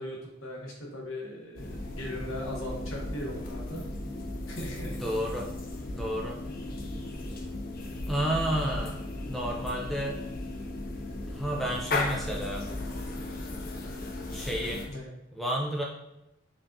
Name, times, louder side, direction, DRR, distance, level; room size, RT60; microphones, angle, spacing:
voice 1, 0.0-3.8 4.5-5.0 8.5-8.7 14.9-15.1, left 1 dB, 80° left, -2 dB, 1.0 m, -39 dB
sound 1, 1.6-14.9, left 2 dB, 45° left, 0.6 m, -36 dB
voice 2, 5.0-5.5 5.9-6.4 8.1-10.2 11.3-12.7 14.3-14.9 15.3-15.8, equal, ahead, -3 dB, 0.3 m, -31 dB
5.0 x 2.4 x 2.6 m, 0.87 s
head